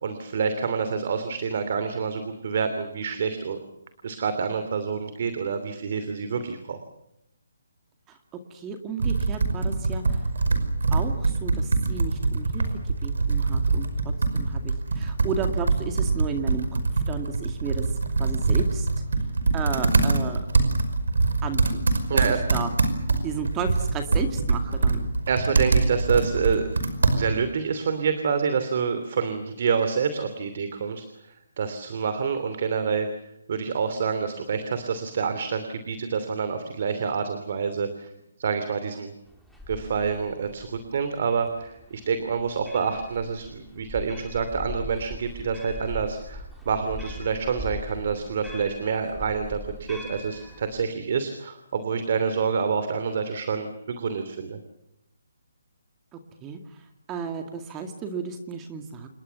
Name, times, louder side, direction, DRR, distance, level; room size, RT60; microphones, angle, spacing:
voice 1, 0.0-3.6 4.0-6.8 22.1-22.4 25.3-26.7 27.1-31.0 31.6-33.1 33.5-38.1 38.4-39.1 39.7-54.6, right 6 dB, 50° right, 9 dB, 2.9 m, -27 dB
voice 2, 8.5-10.2 10.9-12.7 13.0-16.8 17.1-17.8 18.2-18.9 19.5-20.5 21.4-21.8 22.3-22.7 23.2-25.1 56.1-56.6 57.1-59.1, right 6 dB, 15° right, 6 dB, 2.1 m, -33 dB
Computer keyboard, 9.0-27.5, right 3 dB, 80° right, 5.4 m, -24 dB
sound 1, 39.3-50.8, left 1 dB, ahead, 3.2 m, -41 dB
28.0 x 21.0 x 7.0 m, 0.81 s
hypercardioid pair, 160°, 0 cm